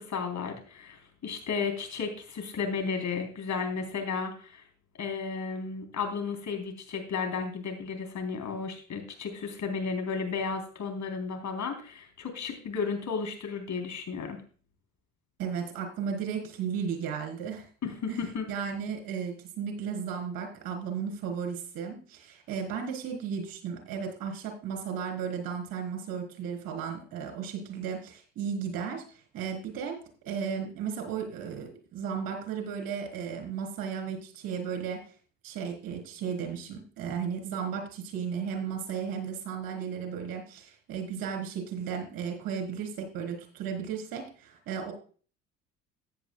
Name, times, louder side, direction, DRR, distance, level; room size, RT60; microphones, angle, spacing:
voice 1, 0.0-4.6 5.0-14.4 17.8-18.5, left 5 dB, 50° left, 5 dB, 3.6 m, -33 dB
voice 2, 15.4-17.7 18.1-18.2 18.5-30.0 30.3-35.0 35.4-44.9, right 7 dB, 65° right, 4 dB, 4.0 m, -35 dB
14.5 x 9.8 x 2.3 m, 0.40 s
hypercardioid pair, 60°, 38 cm